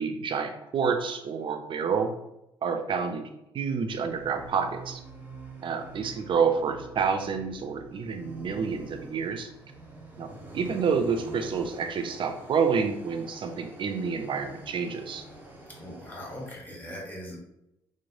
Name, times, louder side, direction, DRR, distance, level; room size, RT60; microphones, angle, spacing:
voice 1, 0.0-2.1 2.6-3.3 3.5-5.0 5.6-9.5 10.2-15.2, right 6 dB, 40° right, 6 dB, 0.4 m, -28 dB
sound 1, 3.9-16.5, right 2 dB, 15° right, 0.7 m, -46 dB
voice 2, 15.7-17.4, equal, 15° left, -3 dB, 1.1 m, -40 dB
3.1 x 2.1 x 2.5 m, 0.85 s
hypercardioid pair, 45°, 12 cm